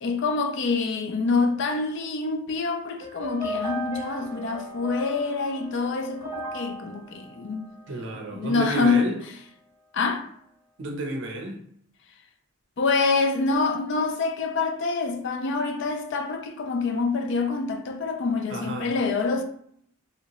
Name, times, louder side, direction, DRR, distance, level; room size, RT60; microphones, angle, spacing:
voice 1, 0.0-7.7 8.3-9.1 9.9-10.2 12.8-19.4, left 4 dB, 55° left, 0.4 m, -26 dB
sound 1, 3.0-8.3, equal, 25° left, 1.1 m, -37 dB
voice 2, 7.9-9.2 10.8-11.6 18.5-18.9, right 1 dB, 55° right, 0.5 m, -31 dB
3.0 x 2.7 x 2.9 m
head